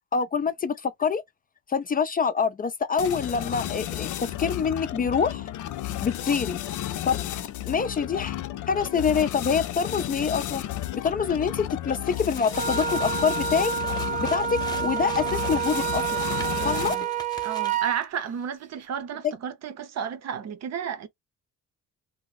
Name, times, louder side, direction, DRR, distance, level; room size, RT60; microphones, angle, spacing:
voice 1, 0.1-1.2 1.7-5.5 6.0-6.6 7.0-7.2 7.6-8.3 8.7-10.6 10.9-13.7 14.2-16.2 16.6-17.0, left 6 dB, 30° left, 0.4 m, -26 dB
sound 1, 3.0-17.2, left 13 dB, 75° left, 0.5 m, -33 dB
sound 2, 12.1-18.0, left 2 dB, 15° left, 0.7 m, -43 dB
Wind instrument woodwind instrument, 12.5-18.0, right 8 dB, 25° right, 0.5 m, -28 dB
voice 2, 16.6-17.1 17.4-21.1, right 7 dB, 60° right, 0.7 m, -33 dB
2.7 x 2.0 x 4.0 m
cardioid pair, 90°, 30 cm